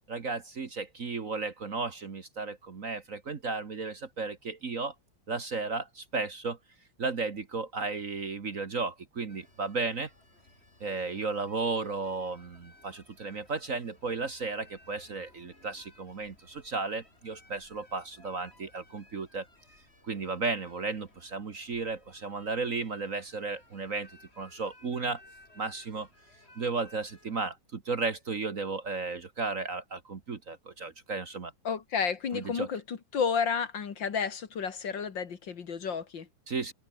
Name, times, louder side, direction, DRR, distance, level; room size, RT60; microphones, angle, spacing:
voice 1, 0.1-4.9 5.3-6.6 7.0-10.1 10.8-19.5 20.0-24.1 24.4-25.2 25.6-26.1 26.6-31.5 32.3-32.7 36.5-36.7, right 4 dB, 40° right, 1.7 m, -34 dB
sound 1, 9.3-27.5, left 1 dB, 25° left, 6.6 m, -59 dB
voice 2, 31.6-36.3, left 6 dB, 60° left, 2.5 m, -31 dB
omnidirectional pair, 2.4 m